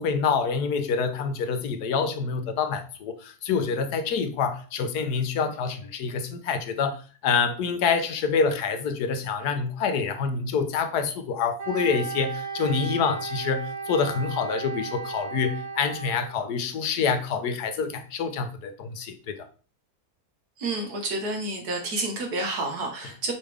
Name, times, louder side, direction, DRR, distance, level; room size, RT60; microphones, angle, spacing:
voice 1, 0.0-19.5, left 5 dB, 85° left, 1.3 m, -27 dB
Wind instrument woodwind instrument, 11.6-16.4, right 6 dB, 50° right, 1.8 m, -35 dB
voice 2, 20.6-23.3, right 2 dB, 75° right, 1.9 m, -29 dB
5.8 x 4.8 x 3.5 m
omnidirectional pair, 1.7 m